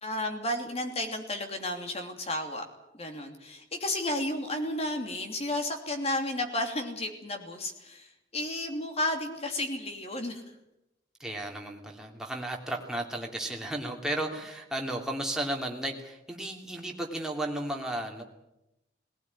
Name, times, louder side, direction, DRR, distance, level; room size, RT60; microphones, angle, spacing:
voice 1, 0.0-2.6 2.9-10.4, left 1 dB, 35° left, 5 dB, 3.0 m, -32 dB
voice 2, 11.2-18.2, right 1 dB, 5° right, 0 dB, 2.9 m, -34 dB
19.5 x 18.0 x 9.9 m, 0.89 s
head